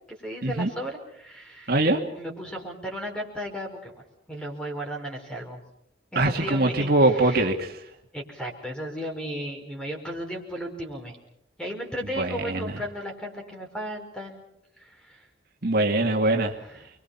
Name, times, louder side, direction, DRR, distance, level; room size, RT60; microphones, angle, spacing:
voice 1, 0.2-1.8 2.2-5.6 6.1-7.5 8.1-11.2 11.6-14.4 14.8-15.3 16.7-16.9, equal, 5° left, 1 dB, 5.0 m, -35 dB
voice 2, 1.7-2.0 6.2-7.8 12.2-12.7 15.6-16.5, right 2 dB, 55° right, 2 dB, 2.2 m, -22 dB
29.5 x 23.0 x 5.8 m, 0.74 s
head